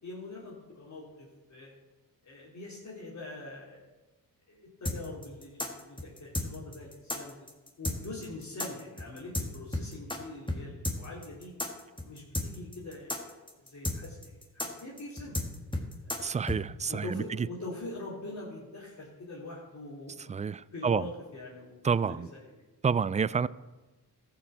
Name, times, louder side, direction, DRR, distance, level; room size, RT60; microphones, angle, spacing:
voice 1, 0.0-1.7 2.2-3.9 4.5-7.4 7.8-11.5 12.0-15.4 16.0-16.5 16.9-20.1 20.7-22.4 23.2-23.4, left 2 dB, 45° left, 3.2 m, -44 dB
sound 1, 4.9-10.2 10.5-10.6 10.8-16.6, left 1 dB, 15° left, 1.9 m, -33 dB
voice 2, 16.2-17.2 20.3-21.0 21.8-22.3 22.8-23.5, right 6 dB, 20° right, 0.3 m, -28 dB
13.5 x 6.0 x 6.9 m
cardioid pair, 60°, 38 cm